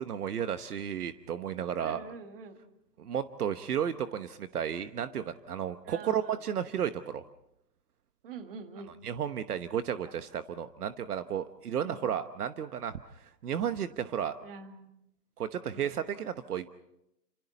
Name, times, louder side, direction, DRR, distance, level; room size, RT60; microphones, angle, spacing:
voice 1, 0.0-2.0 3.0-7.2 9.0-14.3 15.4-16.7, right 9 dB, 65° right, 10 dB, 1.2 m, -33 dB
voice 2, 1.8-2.6 5.8-6.4 8.2-9.0 11.8-12.1 14.4-14.9 15.7-15.9, right 5 dB, 35° right, 7 dB, 2.1 m, -45 dB
29.5 x 27.5 x 4.1 m, 0.82 s
hypercardioid pair, 170°, 49 cm